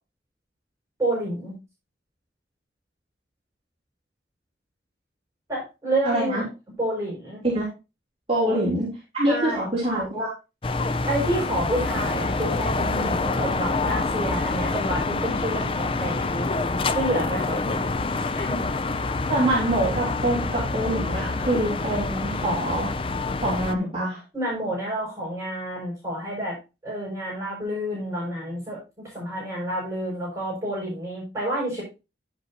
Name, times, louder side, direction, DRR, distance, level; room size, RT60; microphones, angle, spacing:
voice 1, 1.0-1.6 5.5-6.5 6.8-7.4 8.4-8.7 9.2-9.6 11.1-16.5 16.9-17.9 18.4-18.6 24.3-26.6 26.8-31.8, right 1 dB, 15° right, -5 dB, 6.6 m, -29 dB
voice 2, 6.0-6.4 7.4-7.7 8.3-10.3 19.3-22.9 23.4-24.2, right 1 dB, 30° right, -5 dB, 3.7 m, -25 dB
sound 1, 10.6-23.7, left 3 dB, 30° left, 0.5 m, -26 dB
10.0 x 8.1 x 2.9 m, 0.27 s
head